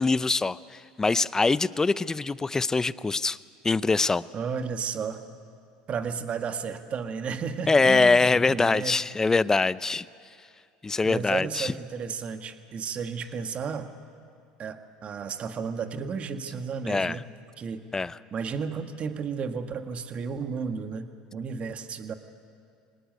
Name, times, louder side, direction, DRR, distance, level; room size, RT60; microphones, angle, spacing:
voice 1, 0.0-3.4 3.6-4.2 7.7-10.0 10.8-11.7 16.9-17.2 17.9-18.2, left 3 dB, 15° left, 18 dB, 0.5 m, -23 dB
voice 2, 4.3-5.2 5.9-9.0 11.0-13.9 14.6-17.3 17.6-17.8 18.3-22.1, right 6 dB, 40° right, 7 dB, 1.7 m, -33 dB
24.0 x 19.0 x 9.4 m, 2.4 s
hypercardioid pair, 85°, 3 cm